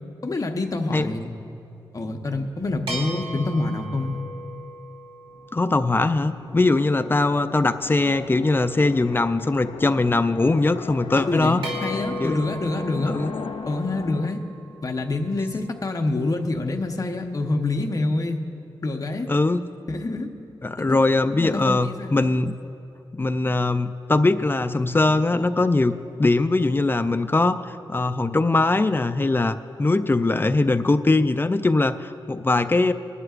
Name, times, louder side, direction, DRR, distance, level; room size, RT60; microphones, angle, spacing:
voice 1, 0.2-1.3 1.9-4.2 11.3-13.2 13.7-14.4 14.8-18.4 18.8-19.3 19.9-20.3 20.9-21.0 21.3-22.1, left 2 dB, 40° left, 3 dB, 1.0 m, -26 dB
sound 1, 2.9-6.5 11.6-16.0, right 1 dB, 85° right, 2.8 m, -38 dB
sound 2, 5.3-14.3, left 6 dB, 90° left, 0.4 m, -39 dB
voice 2, 5.5-11.6 12.2-12.5 13.1-13.3 19.3-19.7 20.6-22.5 23.2-32.9, left 2 dB, 25° left, 10 dB, 0.4 m, -21 dB
21.5 x 11.0 x 2.5 m, 2.7 s
cardioid pair, 80°, 9 cm